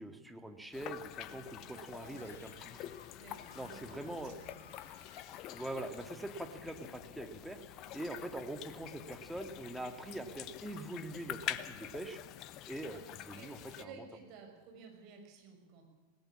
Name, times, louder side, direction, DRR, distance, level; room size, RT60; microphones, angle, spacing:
voice 1, 0.0-2.9 3.6-4.3 5.5-7.6 7.9-12.2 12.7-13.0 13.3-13.9, right 1 dB, 5° right, 6 dB, 2.1 m, -43 dB
sound 1, 0.7-13.9, left 13 dB, 35° left, 0.9 m, -47 dB
voice 2, 1.6-2.4 3.2-4.7 7.8-8.1 12.8-13.0 13.3-15.9, right 5 dB, 40° right, 3 dB, 6.1 m, -54 dB
Screaming, 2.1-6.0, left 5 dB, 55° left, 3.2 m, -59 dB
20.0 x 18.0 x 8.6 m, 1.3 s
figure-of-eight pair, 90°, 0 cm